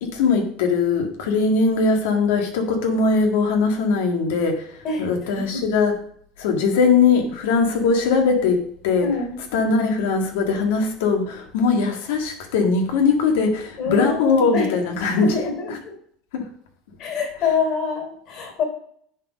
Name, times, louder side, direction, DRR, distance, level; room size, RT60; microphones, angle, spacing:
voice 1, 0.0-5.9 6.4-9.1 9.5-15.3 16.3-16.5, left 4 dB, 85° left, 3 dB, 1.8 m, -20 dB
voice 2, 9.0-9.4 13.8-14.7 15.2-15.9 17.0-18.6, left 5 dB, 55° left, 2 dB, 3.7 m, -25 dB
10.0 x 4.2 x 5.3 m, 0.64 s
supercardioid pair, 120°, 0 cm